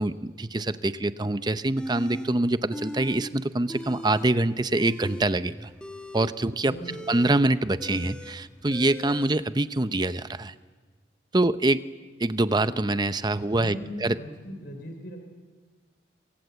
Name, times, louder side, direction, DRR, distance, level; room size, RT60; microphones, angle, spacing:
voice 1, 0.0-5.7 6.1-6.7 7.1-10.5 11.3-11.9 12.2-14.1, right 2 dB, 25° right, 13 dB, 0.7 m, -25 dB
sound 1, 1.8-2.3 2.7-3.2 3.5-4.3 4.7-9.3, equal, 5° left, 1.6 m, -39 dB
voice 2, 6.6-7.2 13.5-15.2, equal, 60° left, 4 dB, 3.5 m, -39 dB
27.0 x 24.0 x 8.1 m, 1.4 s
head